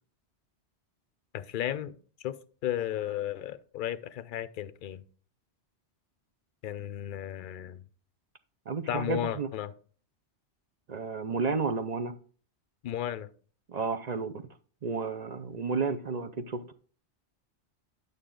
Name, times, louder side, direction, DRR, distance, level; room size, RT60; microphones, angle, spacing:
voice 1, 1.3-1.9 2.2-2.4 2.6-5.0 6.6-7.8 8.9-9.7 12.8-13.3, left 11 dB, 55° left, 14 dB, 0.6 m, -34 dB
voice 2, 8.7-9.5 10.9-12.1 13.7-14.4 14.8-16.7, right 4 dB, 45° right, 8 dB, 0.6 m, -32 dB
9.5 x 6.7 x 3.8 m, 0.42 s
omnidirectional pair, 1.2 m